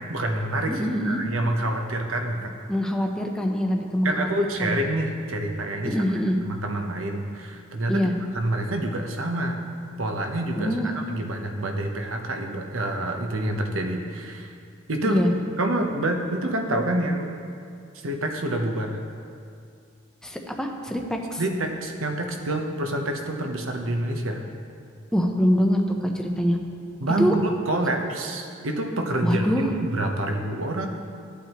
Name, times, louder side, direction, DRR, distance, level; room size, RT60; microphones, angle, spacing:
voice 1, 0.1-2.5 4.0-6.0 6.4-8.1 8.3-9.6 10.0-14.5 14.9-15.2 15.6-17.3 18.0-19.0 21.4-24.4 27.0-30.9, right 1 dB, 75° right, 3 dB, 1.0 m, -27 dB
voice 2, 0.7-1.2 2.7-4.7 5.8-6.4 7.9-8.1 10.6-10.9 15.0-15.3 20.2-21.4 25.1-26.6 27.2-27.3 29.2-29.7, equal, 5° left, 1 dB, 0.8 m, -24 dB
14.5 x 8.4 x 3.0 m, 2.3 s
head